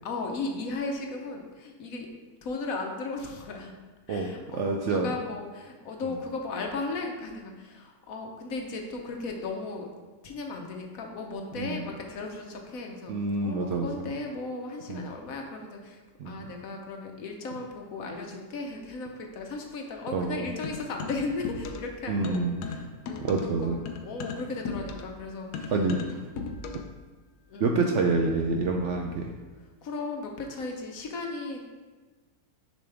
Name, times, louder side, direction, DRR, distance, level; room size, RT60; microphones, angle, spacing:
voice 1, 0.0-2.1 2.4-3.7 4.1-9.9 10.2-13.1 13.4-25.7 27.5-27.7 29.8-31.6, left 3 dB, 65° left, 2 dB, 1.2 m, -36 dB
voice 2, 4.1-5.1 11.6-11.8 13.1-14.0 14.9-15.1 16.2-16.4 20.1-20.5 22.1-22.6 23.2-23.8 25.7-26.2 27.6-29.3, right 3 dB, 65° right, 2 dB, 0.7 m, -27 dB
sound 1, 20.6-22.0 22.2-27.0, left 4 dB, 85° left, 1.2 m, -37 dB
6.9 x 5.4 x 3.4 m, 1.3 s
omnidirectional pair, 1.7 m